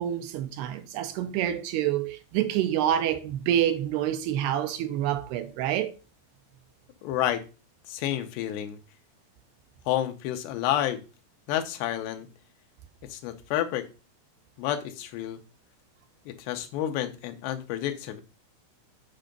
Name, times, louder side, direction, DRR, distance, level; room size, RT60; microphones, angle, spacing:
voice 1, 0.0-5.9, right 11 dB, 80° right, 2.7 m, -27 dB
voice 2, 7.0-7.4 7.9-8.8 9.9-11.0 11.5-12.3 13.1-13.9 14.6-15.4 16.3-18.2, left 12 dB, 80° left, 3.1 m, -30 dB
9.0 x 5.6 x 5.2 m
omnidirectional pair, 4.9 m